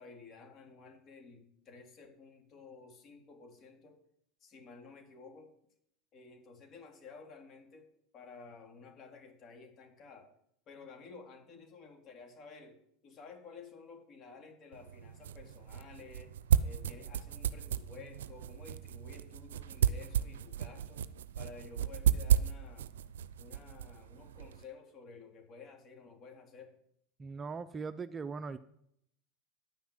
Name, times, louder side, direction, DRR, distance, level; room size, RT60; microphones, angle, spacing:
voice 1, 0.0-3.9 4.4-5.5 6.1-7.9 8.1-10.3 10.7-12.8 13.0-16.3 16.6-21.0 21.4-22.9 23.4-26.8, left 4 dB, 40° left, 3 dB, 3.3 m, -53 dB
sound 1, 14.7-24.6, right 9 dB, 85° right, 0.5 m, -33 dB
voice 2, 27.2-28.6, right 4 dB, 25° right, 13 dB, 0.5 m, -40 dB
10.5 x 5.9 x 8.7 m, 0.72 s
hypercardioid pair, 105°, 0 cm